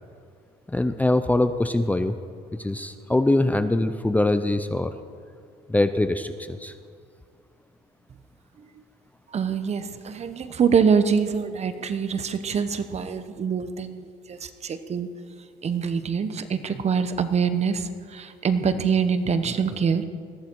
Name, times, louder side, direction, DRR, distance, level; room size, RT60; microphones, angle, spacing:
voice 1, 0.7-2.2 2.5-4.9 5.7-6.7, left 2 dB, 10° left, 10 dB, 0.6 m, -23 dB
voice 2, 9.3-15.1 15.6-20.0, right 6 dB, 40° right, 10 dB, 1.1 m, -25 dB
20.5 x 14.5 x 4.7 m, 2.2 s
cardioid pair, 110°, 17 cm